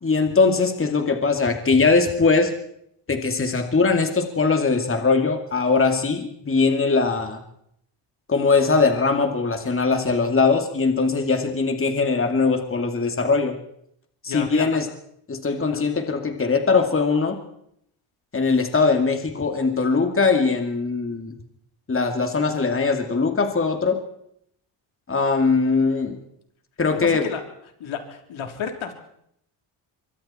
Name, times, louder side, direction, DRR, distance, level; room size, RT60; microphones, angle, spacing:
voice 1, 0.0-2.5 3.1-7.4 8.3-13.6 14.2-14.9 15.3-17.4 18.3-21.3 21.9-24.0 25.1-26.2 26.8-27.2, left 4 dB, 25° left, 5 dB, 2.6 m, -21 dB
voice 2, 14.3-14.8 15.7-15.8 27.0-27.4 27.8-28.9, left 7 dB, 70° left, 4 dB, 3.8 m, -31 dB
24.5 x 23.5 x 4.5 m, 0.73 s
cardioid pair, 95°, 50 cm